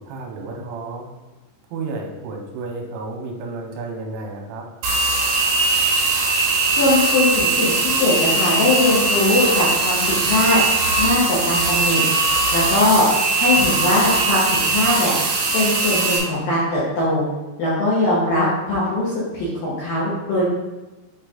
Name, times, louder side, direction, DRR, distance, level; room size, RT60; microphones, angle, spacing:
voice 1, 0.1-1.1 1.7-4.6, right 3 dB, 90° right, 1 dB, 3.2 m, -31 dB
sound 1, 4.8-16.2, right 3 dB, 75° right, 2.0 m, -20 dB
voice 2, 6.7-10.6 11.0-12.0 12.5-13.1 13.4-15.1 15.5-17.3 17.6-20.4, left 2 dB, 70° left, -9 dB, 2.2 m, -20 dB
8.0 x 3.4 x 3.7 m, 1.1 s
omnidirectional pair, 5.8 m